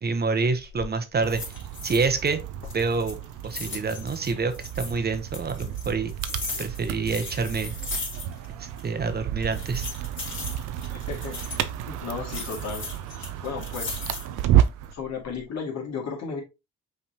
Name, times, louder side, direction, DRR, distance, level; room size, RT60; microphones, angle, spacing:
voice 1, 0.0-1.4 1.8-2.4 2.7-3.2 3.4-6.1 6.6-7.7 8.6-9.9, right 4 dB, 30° right, 8 dB, 0.8 m, -27 dB
sound 1, 0.6-0.9 1.3-2.3 2.6-4.9 5.3-8.5 8.8-8.9 9.4-11.7 12.3-14.4 14.9-15.4, left 3 dB, 40° left, 2.4 m, -37 dB
sound 2, 1.2-14.9, right 11 dB, 85° right, 0.5 m, -31 dB
voice 2, 10.9-11.3 11.9-12.8 13.4-14.0 14.9-16.4, left 5 dB, 60° left, -1 dB, 2.2 m, -34 dB
5.6 x 3.4 x 2.8 m, 0.26 s
cardioid pair, 90°, 30 cm